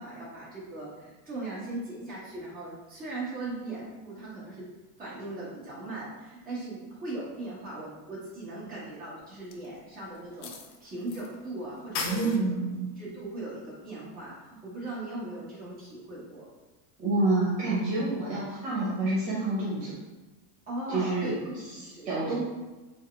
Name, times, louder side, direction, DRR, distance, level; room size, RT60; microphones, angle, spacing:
voice 1, 0.0-4.7 5.0-10.5 10.8-12.4 13.0-16.4 20.7-22.1, right 2 dB, 20° right, -9 dB, 1.3 m, -39 dB
sound 1, 9.5-9.6 10.4-11.3 11.5-11.6 12.0-12.4, left 3 dB, 90° left, 0.7 m, -34 dB
voice 2, 12.0-12.9 17.0-19.9 20.9-21.3 22.0-22.4, right 2 dB, 55° right, -7 dB, 1.3 m, -28 dB
4.5 x 2.2 x 3.4 m, 1.1 s
supercardioid pair, 155°, 49 cm